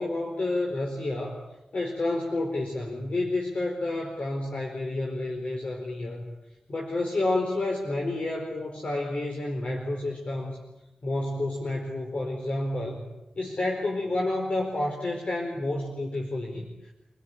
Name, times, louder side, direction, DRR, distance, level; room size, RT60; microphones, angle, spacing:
voice 1, 0.0-1.4 1.7-6.3 6.7-10.6 11.0-13.0 13.3-16.9, left 2 dB, 60° left, 1 dB, 4.6 m, -30 dB
28.5 x 17.5 x 8.9 m, 0.96 s
cardioid pair, 45°, 2 cm